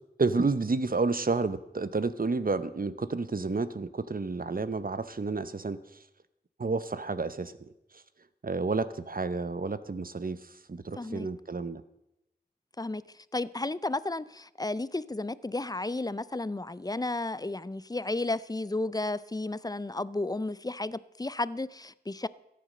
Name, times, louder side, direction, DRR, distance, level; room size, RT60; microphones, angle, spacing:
voice 1, 0.2-6.0 6.6-8.0 8.4-11.8, right 3 dB, 55° right, 0.7 m, -30 dB
voice 2, 11.0-11.3 12.8-13.0 13.3-22.3, left 2 dB, 20° left, 0.5 m, -33 dB
14.0 x 9.3 x 6.5 m
wide cardioid pair, 50°, 17 cm